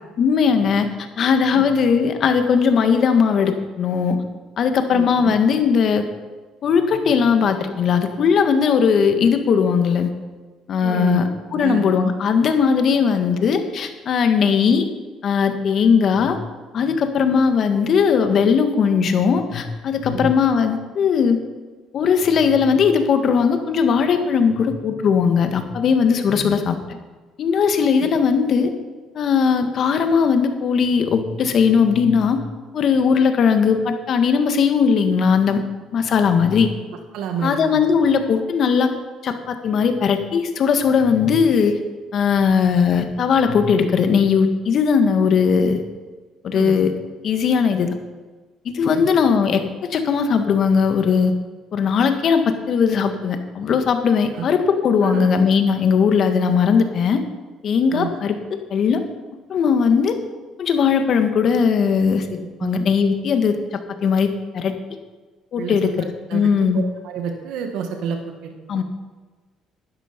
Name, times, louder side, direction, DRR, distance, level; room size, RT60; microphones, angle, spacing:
voice 1, 0.2-4.2 4.6-6.0 6.6-10.1 10.7-14.9 15.2-16.4 16.7-21.4 21.9-27.0 27.4-28.7 29.1-32.4 32.7-35.6 35.9-36.7 37.4-38.9 39.2-41.8 42.1-45.8 46.4-46.9 47.2-47.9 48.6-51.3 51.7-57.2 57.6-59.0 59.5-60.2 60.6-63.5 64.0-64.7 65.5-66.8 68.7-68.8, left 6 dB, 55° left, 7 dB, 1.6 m, -18 dB
voice 2, 4.9-5.4 10.8-11.2 11.5-11.8 20.1-20.3 37.1-37.8 42.4-42.5 46.5-46.8 48.9-49.1 54.3-54.4 55.0-55.3 57.9-58.1 62.6-62.8 65.6-65.8 66.3-68.8, right 7 dB, 75° right, 4 dB, 1.7 m, -29 dB
12.0 x 10.0 x 5.2 m, 1.3 s
supercardioid pair, 85°, 0 cm